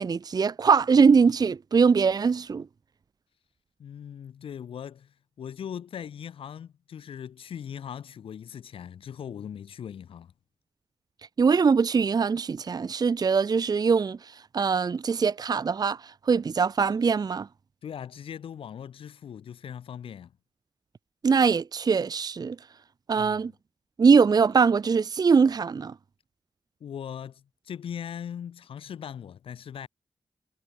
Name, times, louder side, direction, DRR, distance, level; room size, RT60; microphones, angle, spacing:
voice 1, 0.0-2.6 11.4-14.2 14.5-16.0 16.3-17.5 21.2-22.6 23.1-23.5 24.0-25.9, right 5 dB, 45° right, 0.5 m, -22 dB
voice 2, 3.8-10.3 17.8-20.3 23.2-23.4 26.8-29.9, left 8 dB, 80° left, 3.8 m, -39 dB
supercardioid pair, 45°, 9 cm